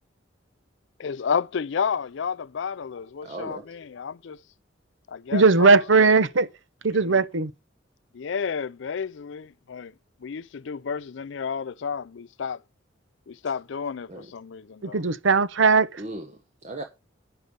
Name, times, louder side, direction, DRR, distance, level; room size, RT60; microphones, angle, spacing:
voice 1, 1.0-4.4 5.1-6.1 7.0-7.2 8.1-9.9 10.2-12.6 13.3-15.0, left 6 dB, 65° left, 0.4 m, -31 dB
voice 2, 3.2-3.6 14.1-14.3 16.0-16.8, right 2 dB, 35° right, 1.2 m, -37 dB
voice 3, 5.3-6.5 6.8-7.5 14.8-16.0, right 4 dB, 75° right, 0.8 m, -19 dB
9.8 x 6.6 x 5.3 m
head